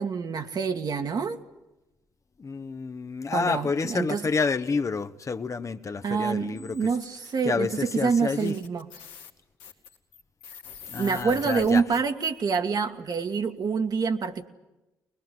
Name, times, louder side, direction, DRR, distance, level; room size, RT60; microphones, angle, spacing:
voice 1, 0.0-1.4 3.3-4.2 6.0-8.9 11.0-14.5, right 5 dB, 55° right, 1.8 m, -26 dB
voice 2, 2.4-6.9 7.4-8.5 10.9-11.8, left 4 dB, 40° left, 1.1 m, -29 dB
sound 1, 6.6-7.3 7.9-8.0 8.3-12.6, left 7 dB, 85° left, 2.1 m, -46 dB
22.0 x 21.0 x 9.3 m
hypercardioid pair, 50°, 8 cm